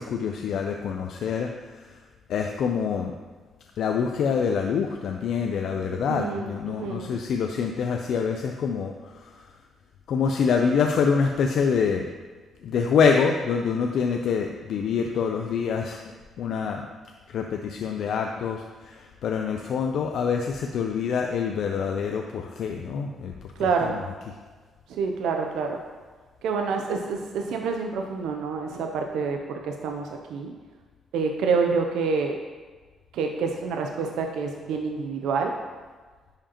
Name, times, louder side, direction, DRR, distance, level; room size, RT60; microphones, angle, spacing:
voice 1, 0.0-1.5 2.3-3.1 3.8-8.9 10.1-12.1 12.6-16.0 16.4-16.8 17.3-23.3 23.8-24.0, left 6 dB, 70° left, 3 dB, 0.4 m, -25 dB
voice 2, 5.9-7.1 23.6-23.9 25.0-25.8 26.4-29.4 29.6-30.0 30.3-30.5 31.1-32.4 33.1-35.5, right 5 dB, 85° right, 3 dB, 0.5 m, -27 dB
10.5 x 4.9 x 2.9 m, 1.4 s
cardioid pair, 90°, 0 cm